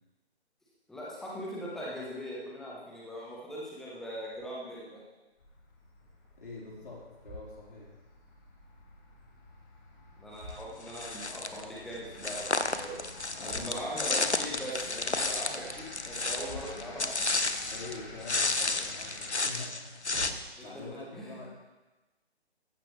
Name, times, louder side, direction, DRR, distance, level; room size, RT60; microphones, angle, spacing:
voice 1, 0.9-5.0 10.2-13.0 13.4-17.4 20.6-20.8 21.1-21.4, equal, ahead, -5 dB, 1.0 m, -40 dB
sound 1, 4.3-4.7 5.3-5.4 6.0-6.6 7.1-8.0 9.7-11.4 13.4-14.2 16.3-17.4 17.8-18.6 19.6-20.5, equal, 25° right, 2.9 m, -49 dB
sound 2, 5.4-19.4, left 2 dB, 15° left, 1.5 m, -50 dB
voice 2, 6.4-7.9 13.3-13.9 17.7-20.3 20.6-21.4, left 3 dB, 50° left, -5 dB, 4.3 m, -45 dB
sound 3, 10.9-11.6 12.2-18.0 18.2-20.3, left 3 dB, 85° left, 1.0 m, -32 dB
15.0 x 12.0 x 3.3 m, 1.1 s
figure-of-eight pair, 145°, 33 cm